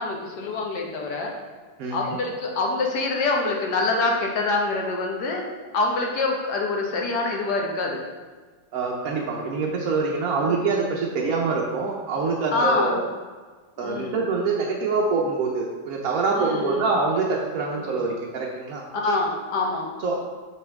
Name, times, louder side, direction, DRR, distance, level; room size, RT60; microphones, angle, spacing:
voice 1, 0.0-1.4 1.9-5.4 5.7-8.0 10.4-10.6 12.5-13.0 13.8-14.3 16.3-16.9 17.8-17.9 19.0-19.9, left 3 dB, 75° left, 0 dB, 1.6 m, -25 dB
voice 2, 8.7-13.1 13.8-18.8 20.0-20.2, right 4 dB, 65° right, -2 dB, 1.0 m, -25 dB
6.1 x 5.4 x 3.4 m, 1.4 s
omnidirectional pair, 1.8 m